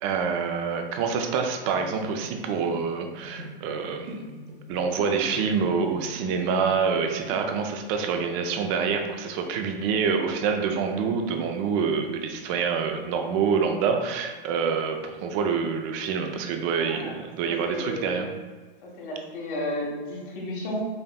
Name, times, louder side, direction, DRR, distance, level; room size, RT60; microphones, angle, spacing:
voice 1, 0.0-4.3 4.7-18.3, right 6 dB, 35° right, 5 dB, 0.4 m, -26 dB
sound 1, 1.6-6.3 6.6-7.4, equal, 65° right, 1.1 m, -42 dB
voice 2, 16.8-18.3 18.8-20.9, equal, 60° left, -3 dB, 1.3 m, -33 dB
5.4 x 2.6 x 2.3 m, 1.4 s
hypercardioid pair, 135°, 29 cm